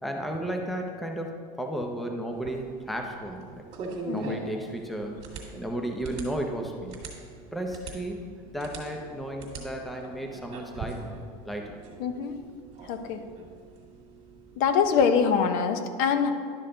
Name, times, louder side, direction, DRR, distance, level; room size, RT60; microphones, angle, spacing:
voice 1, 0.0-3.5 4.1-5.3 5.5-7.0 7.5-11.1 11.4-11.8, right 1 dB, ahead, 2 dB, 0.6 m, -34 dB
sound 1, 2.3-15.1, right 3 dB, 35° right, 1.9 m, -43 dB
voice 2, 4.0-4.4 12.0-12.4 12.9-13.2 14.6-16.3, left 6 dB, 50° left, 8 dB, 0.8 m, -24 dB
11.5 x 6.5 x 3.8 m, 2.1 s
supercardioid pair, 155°, 19 cm